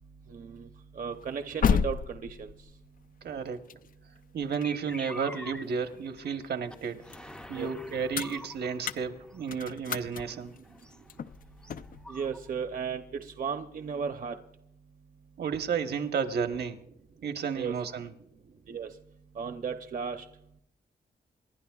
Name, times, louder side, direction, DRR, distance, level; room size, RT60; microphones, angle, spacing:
voice 1, 0.3-0.7 0.9-2.5 7.5-7.7 12.1-14.4 17.5-17.8 18.7-18.9 19.4-20.3, right 6 dB, 55° right, 6 dB, 0.8 m, -35 dB
sound 1, 1.1-6.2 6.6-12.0, left 7 dB, 55° left, 0.5 m, -34 dB
voice 2, 3.2-3.6 4.3-10.5 15.4-16.8 17.2-18.1, right 6 dB, 75° right, 7 dB, 1.2 m, -32 dB
sound 2, 4.6-5.7 6.0-6.4 6.7-6.8 7.0-9.6 10.2-12.5, left 1 dB, 5° left, 0.5 m, -46 dB
28.0 x 11.5 x 2.4 m, 0.75 s
wide cardioid pair, 125°, 17 cm